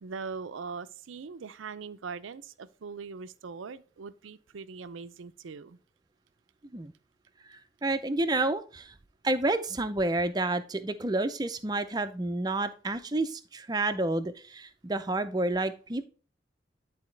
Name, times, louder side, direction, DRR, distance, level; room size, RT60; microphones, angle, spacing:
voice 1, 0.0-5.8, right 5 dB, 85° right, 0.5 m, -41 dB
voice 2, 7.5-8.9 9.2-16.0, right 2 dB, 20° right, 0.5 m, -30 dB
10.5 x 4.1 x 3.2 m
head